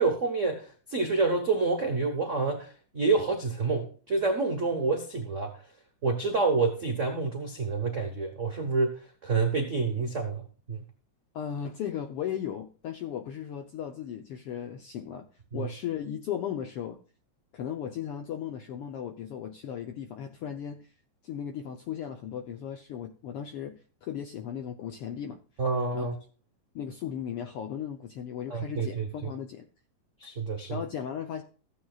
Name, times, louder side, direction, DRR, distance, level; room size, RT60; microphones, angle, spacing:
voice 1, 0.0-5.5 6.0-10.4 10.7-10.8 15.5-15.7 25.6-26.1 28.5-29.1 30.2-30.8, right 4 dB, 75° right, 2 dB, 0.7 m, -28 dB
voice 2, 11.3-15.3 15.5-17.0 17.5-20.9 21.2-23.7 24.0-25.4 25.9-26.1 26.7-29.7 30.7-31.4, left 9 dB, 75° left, 5 dB, 1.3 m, -36 dB
14.5 x 8.8 x 2.4 m, 0.38 s
omnidirectional pair, 3.4 m